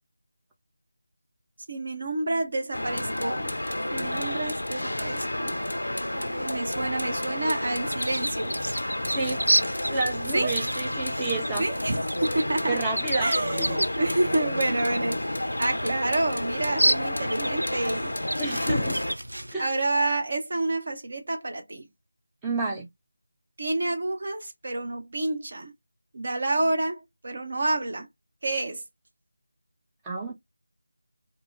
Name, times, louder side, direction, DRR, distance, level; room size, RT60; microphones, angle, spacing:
voice 1, 1.7-3.5 3.9-5.5 6.1-8.6 10.3-10.5 11.6-12.8 13.1-15.3 15.6-18.1 19.6-21.9 23.6-25.7 26.1-28.1 28.4-28.8, right 2 dB, 45° right, 0.7 m, -28 dB
sound 1, 2.7-19.1, left 1 dB, 75° left, 0.4 m, -30 dB
sound 2, 7.8-19.5, right 1 dB, 80° right, 0.3 m, -31 dB
voice 2, 9.1-9.4 9.9-11.6 12.7-13.8 18.4-19.0 19.5-19.7 22.4-22.9 30.0-30.3, right 3 dB, 10° right, 0.4 m, -30 dB
2.2 x 2.2 x 3.0 m
figure-of-eight pair, 165°, 0 cm